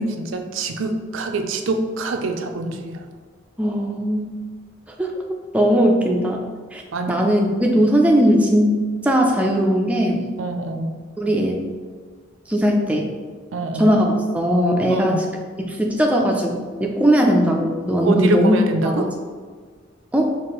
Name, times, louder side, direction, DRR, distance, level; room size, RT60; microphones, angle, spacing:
voice 1, 0.0-3.0 6.9-7.2 10.4-11.0 13.5-13.9 14.9-15.2 18.0-19.1, right 2 dB, 85° right, 5 dB, 0.4 m, -25 dB
voice 2, 3.6-4.3 5.0-5.1 5.5-6.4 6.7-6.8 7.1-8.8 9.0-10.3 11.2-11.7 12.5-13.1 13.8-14.1 14.3-15.2 15.7-18.5 18.8-19.1 20.1-20.3, equal, 5° right, 1 dB, 0.3 m, -18 dB
4.7 x 2.5 x 3.0 m, 1.5 s
head